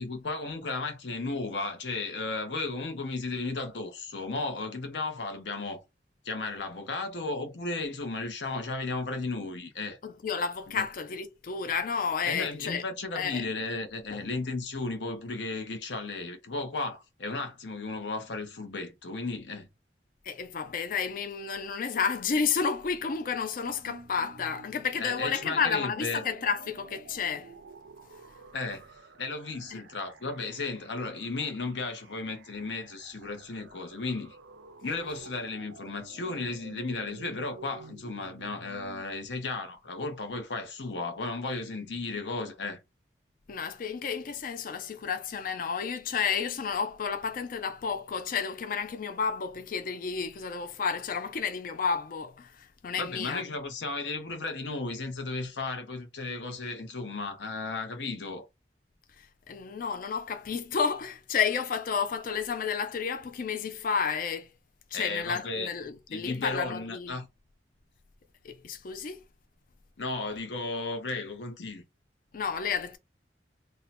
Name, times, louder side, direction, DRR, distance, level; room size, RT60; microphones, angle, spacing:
voice 1, 0.0-5.8 6.2-10.0 10.7-10.9 12.2-19.7 25.0-26.2 28.5-28.8 29.2-34.4 34.8-42.8 53.0-58.5 64.9-65.7 66.1-67.3 70.0-71.8, left 3 dB, 80° left, 0.8 m, -34 dB
voice 2, 10.0-12.8 13.1-13.5 14.1-14.3 20.2-27.5 29.7-29.8 43.5-53.4 59.2-64.5 64.9-67.2 68.4-69.2 72.3-73.0, left 6 dB, 50° left, 0.4 m, -31 dB
sound 1, 23.7-39.0, right 3 dB, 75° right, 0.4 m, -51 dB
2.7 x 2.2 x 4.1 m
head